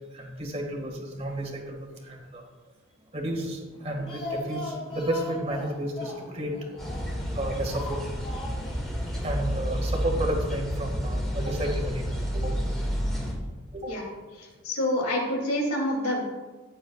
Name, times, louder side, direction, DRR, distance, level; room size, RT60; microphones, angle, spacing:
voice 1, 0.1-2.4 3.1-6.8 7.3-8.0 9.2-12.6 13.7-14.0, right 1 dB, 30° right, 2 dB, 1.9 m, -32 dB
Speech, 3.8-7.3 7.7-8.8 9.1-9.2 9.5-9.6, left 2 dB, 25° left, 3.1 m, -39 dB
sound 1, 6.8-13.3, equal, ahead, 2.1 m, -30 dB
voice 2, 14.6-16.2, left 1 dB, 85° left, 0 dB, 3.0 m, -27 dB
15.0 x 10.0 x 2.4 m, 1.3 s
head